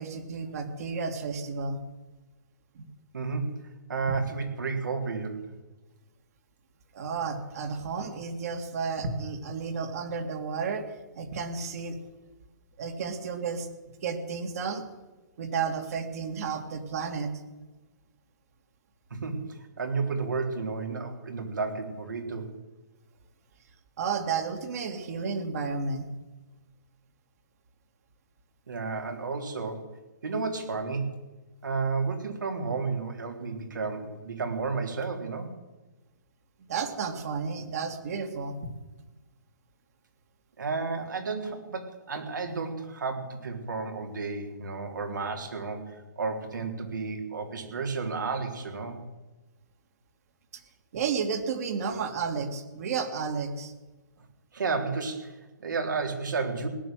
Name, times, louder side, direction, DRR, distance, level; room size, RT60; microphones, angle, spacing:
voice 1, 0.0-1.8 2.8-2.9 6.9-10.8 11.2-12.0 12.8-13.7 14.0-14.8 15.4-17.4 24.0-26.1 36.7-38.6 50.5-50.6 50.9-53.7, right 5 dB, 55° right, 4 dB, 2.4 m, -32 dB
voice 2, 3.1-5.4 19.1-22.5 28.7-29.9 30.2-31.2 31.6-35.6 40.6-49.0 54.5-56.7, right 4 dB, 85° right, 3 dB, 3.7 m, -32 dB
17.5 x 10.0 x 7.6 m, 1.1 s
hypercardioid pair, 150°, 10 cm